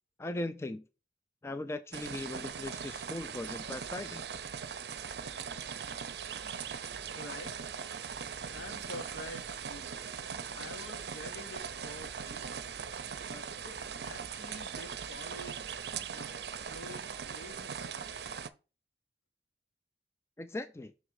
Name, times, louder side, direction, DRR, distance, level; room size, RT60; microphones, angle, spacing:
voice 1, 0.2-0.8 1.4-4.2 20.4-20.9, left 2 dB, 15° left, 0.3 m, -39 dB
sound 1, 1.9-18.5, right 7 dB, 65° right, 0.6 m, -40 dB
voice 2, 7.1-7.5 8.5-9.9 10.5-12.7 13.2-15.7 16.1-16.3 16.6-18.1, left 1 dB, 85° left, 1.5 m, -48 dB
6.3 x 3.7 x 4.6 m
head